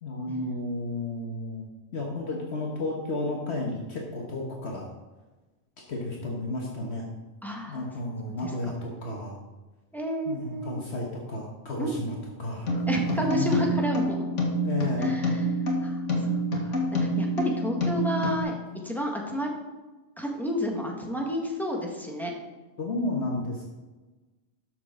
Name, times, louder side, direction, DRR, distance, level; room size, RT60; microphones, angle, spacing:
voice 1, 0.0-1.7 1.9-4.9 5.9-7.0 7.7-9.4 10.3-13.6 14.6-15.1 17.1-17.2 22.8-23.7, left 2 dB, 60° left, -2 dB, 1.5 m, -32 dB
voice 2, 7.4-7.9 8.4-8.7 9.9-10.8 11.8-12.0 12.9-14.3 15.0-15.4 15.8-18.5 18.8-19.6 20.2-22.3, equal, ahead, 0 dB, 1.4 m, -31 dB
sound 1, 12.7-18.4, equal, 80° left, 1.9 m, -27 dB
12.5 x 6.1 x 3.7 m, 1.2 s
omnidirectional pair, 1.2 m